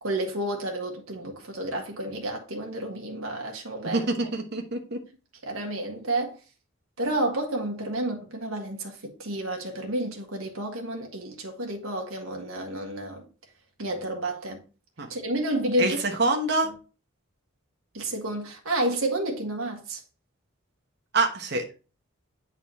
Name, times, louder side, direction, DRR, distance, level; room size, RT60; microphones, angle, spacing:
voice 1, 0.0-4.1 5.4-6.4 7.0-13.2 13.8-14.6 15.1-16.0 17.9-20.0, right 1 dB, 80° right, 1.7 m, -30 dB
voice 2, 3.9-5.0 15.0-15.1 15.8-16.7 21.1-21.6, right 3 dB, 50° right, 1.2 m, -25 dB
8.5 x 4.2 x 4.2 m
head